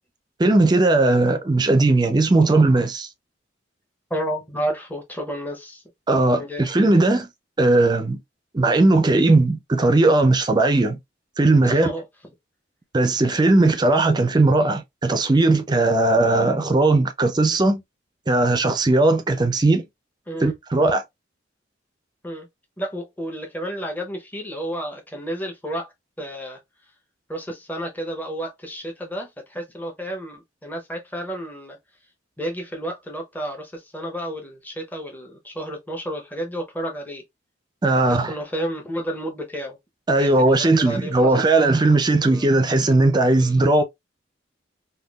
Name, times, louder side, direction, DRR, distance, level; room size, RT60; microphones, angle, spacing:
voice 1, 0.4-3.1 6.1-7.3 7.6-8.2 8.5-11.0 11.4-11.9 12.9-17.8 18.3-19.8 20.4-21.0 37.8-38.3 40.1-43.8, right 2 dB, 25° right, 0.4 m, -18 dB
voice 2, 4.1-5.8 6.4-6.7 11.6-12.1 20.3-20.5 22.2-22.5 22.8-25.9 26.2-26.6 27.3-31.8 32.4-37.2 37.9-39.8 40.2-41.8 42.2-42.5 43.3-43.5, right 1 dB, 10° left, 0.7 m, -31 dB
3.5 x 2.3 x 2.3 m
head